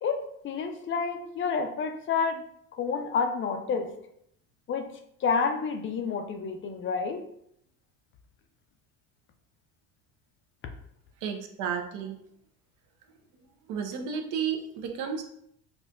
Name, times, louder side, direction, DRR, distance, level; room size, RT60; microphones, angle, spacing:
voice 1, 0.0-2.4 2.8-3.9 4.7-4.9 5.2-7.2, left 5 dB, 40° left, 6 dB, 0.4 m, -29 dB
voice 2, 11.2-12.2 13.7-15.2, right 7 dB, 65° right, 4 dB, 0.6 m, -32 dB
4.1 x 2.3 x 2.5 m, 0.72 s
supercardioid pair, 90°, 33 cm